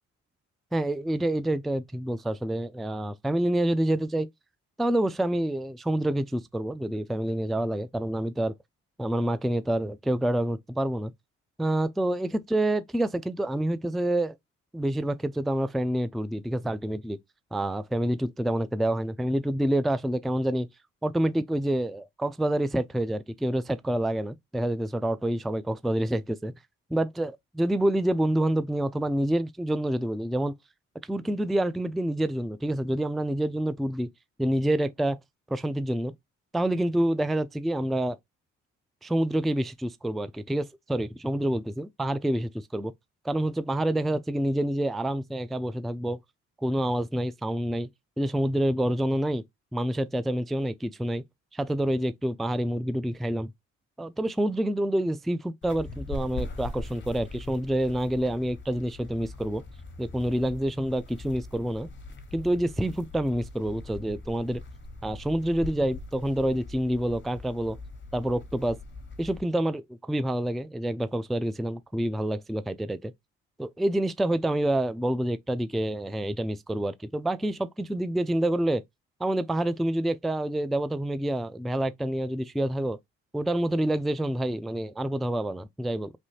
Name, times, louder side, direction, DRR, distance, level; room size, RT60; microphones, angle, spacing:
voice 1, 0.7-4.3 4.8-8.5 9.0-11.1 11.6-14.3 14.7-17.2 17.5-20.7 21.0-26.5 26.9-30.5 31.1-34.1 34.4-35.2 35.5-36.1 36.5-38.2 39.0-42.9 43.2-46.2 46.6-47.9 48.2-49.4 49.7-51.2 51.5-53.5 54.0-59.6 60.0-61.9 62.3-64.6 65.0-67.8 68.1-68.8 69.2-73.1 73.6-78.8 79.2-83.0 83.3-86.1, right 1 dB, ahead, 0.3 m, -27 dB
sound 1, 55.6-69.4, left 2 dB, 35° left, 1.1 m, -41 dB
3.1 x 2.6 x 3.1 m
supercardioid pair, 55°, 32 cm